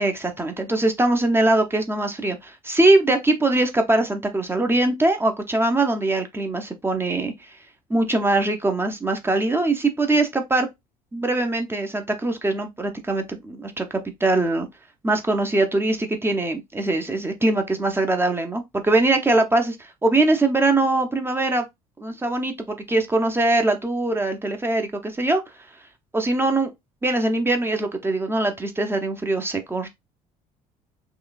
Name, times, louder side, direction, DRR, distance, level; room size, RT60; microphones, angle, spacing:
voice 1, 0.0-7.3 7.9-10.7 11.1-13.9 14.2-14.7 15.0-19.8 20.0-21.6 22.0-25.4 26.1-26.7 27.0-29.9, right 2 dB, 10° right, 0.7 m, -22 dB
3.7 x 3.1 x 2.4 m
figure-of-eight pair, 55°, 19 cm